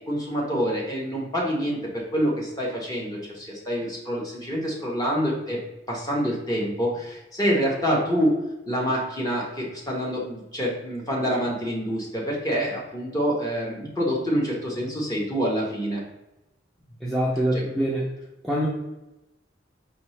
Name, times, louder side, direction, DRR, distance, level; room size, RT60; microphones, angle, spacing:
voice 1, 0.0-5.6 5.9-8.4 8.7-16.0 17.5-17.6, equal, 20° left, -3 dB, 1.0 m, -26 dB
voice 2, 17.0-18.1 18.4-18.7, equal, ahead, -7 dB, 0.5 m, -24 dB
4.4 x 2.7 x 3.2 m, 0.97 s
head